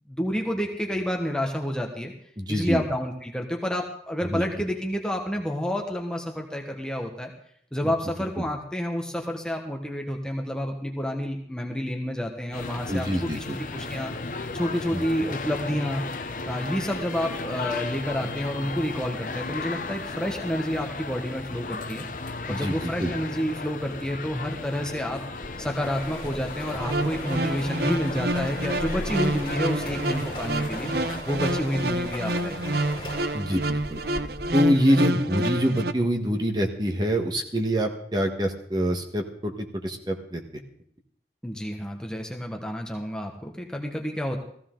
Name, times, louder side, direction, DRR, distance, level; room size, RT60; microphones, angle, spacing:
voice 1, 0.1-2.1 2.5-7.3 7.7-13.4 13.7-14.1 14.5-16.0 16.5-22.0 22.5-25.2 25.6-30.9 31.3-32.6 41.4-44.4, equal, 5° left, 1 dB, 1.2 m, -29 dB
voice 2, 2.4-2.8 4.3-4.4 8.4-8.5 12.9-13.6 14.9-15.0 22.5-23.1 33.3-34.0 34.5-39.5 39.8-40.4, equal, 25° right, 2 dB, 1.4 m, -25 dB
sound 1, 12.5-31.2, left 3 dB, 45° left, 0.8 m, -35 dB
sound 2, 25.4-34.7, left 1 dB, 25° left, 2.6 m, -38 dB
sound 3, 26.7-35.9, right 1 dB, 65° right, 0.7 m, -28 dB
16.0 x 15.5 x 3.9 m, 0.66 s
head